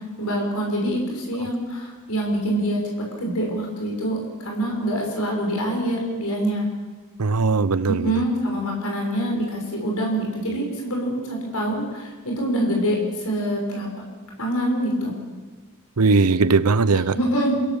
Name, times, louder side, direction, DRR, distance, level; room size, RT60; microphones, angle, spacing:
voice 1, 0.2-6.6 7.9-13.9 14.4-15.1 17.1-17.5, right 1 dB, 75° left, -1 dB, 6.4 m, -25 dB
voice 2, 7.2-8.1 16.0-17.1, right 4 dB, 80° right, 16 dB, 0.8 m, -19 dB
28.5 x 16.5 x 7.2 m, 1.4 s
head